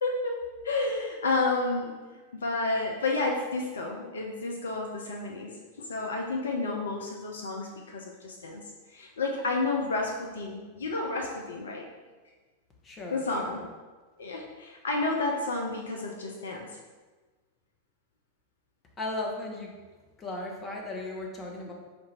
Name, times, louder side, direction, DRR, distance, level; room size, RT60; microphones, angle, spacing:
voice 1, 0.0-1.9 2.3-5.5 5.8-8.6 8.9-11.8 13.1-13.6 14.2-16.7, left 3 dB, 65° left, 1 dB, 0.5 m, -31 dB
voice 2, 12.8-13.7 19.0-19.7 20.2-21.7, left 2 dB, 20° left, -1 dB, 0.9 m, -36 dB
4.3 x 2.5 x 4.2 m, 1.3 s
figure-of-eight pair, 90°, 0 cm